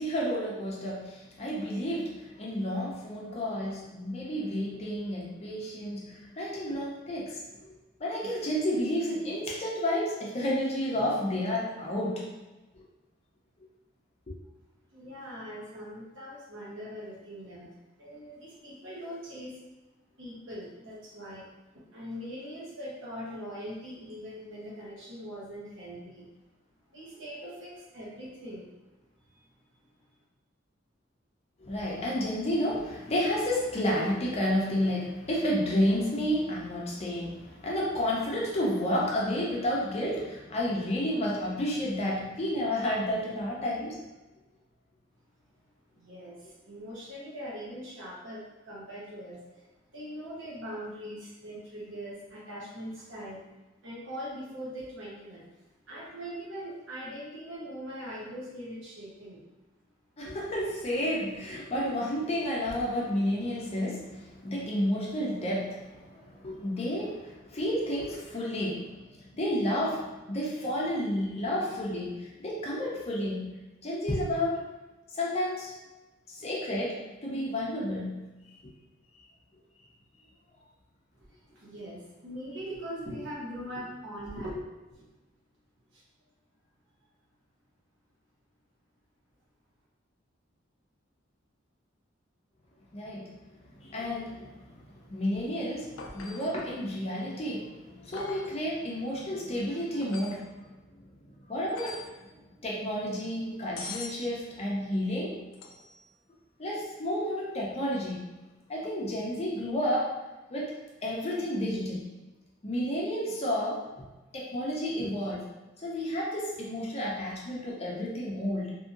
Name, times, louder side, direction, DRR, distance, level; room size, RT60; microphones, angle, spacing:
voice 1, 0.0-7.7 8.0-12.3 12.7-12.8 14.3-14.4 31.6-44.0 60.2-74.6 75.1-75.7 76.4-78.2 92.9-93.3 93.6-100.7 101.2-102.1 102.6-105.4 106.6-108.3 108.7-110.1 110.5-110.8 111.0-112.1 112.6-113.8 114.3-115.5 115.8-118.7, equal, 35° left, -4 dB, 0.6 m, -31 dB
voice 2, 14.9-19.6 20.2-21.5 21.7-26.3 26.9-28.7 29.2-29.5 30.0-30.1 45.9-53.5 53.8-55.5 55.9-59.4 81.2-84.6 84.9-85.1 85.9-86.0, equal, 70° right, -5 dB, 0.9 m, -41 dB
sound 1, 96.0-96.6 98.1-98.6 100.0-100.4 101.7-102.2 103.8-104.2 105.5-106.0 108.8-108.9, left 4 dB, 85° left, 0.4 m, -43 dB
2.7 x 2.7 x 2.5 m, 1.1 s
head